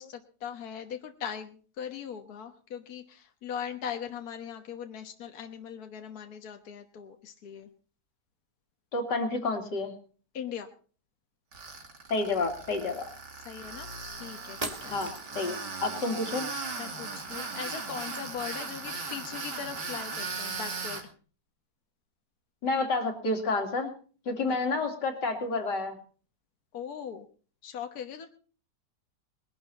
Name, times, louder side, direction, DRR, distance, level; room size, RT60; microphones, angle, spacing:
voice 1, 0.0-7.7 10.3-10.7 13.4-15.0 16.8-21.1 24.5-24.6 26.7-27.3 27.6-28.3, left 8 dB, 65° left, 5 dB, 1.6 m, -40 dB
voice 2, 8.9-9.9 12.1-13.0 14.9-15.1 15.4-16.5 22.6-23.9 24.3-26.0, left 3 dB, 85° left, 4 dB, 2.9 m, -29 dB
Tools, 11.5-21.0, right 4 dB, 90° right, 3.2 m, -38 dB
sound 1, 14.6-15.5, right 2 dB, 25° right, 1.5 m, -38 dB
20.5 x 12.0 x 4.1 m, 0.41 s
omnidirectional pair, 1.8 m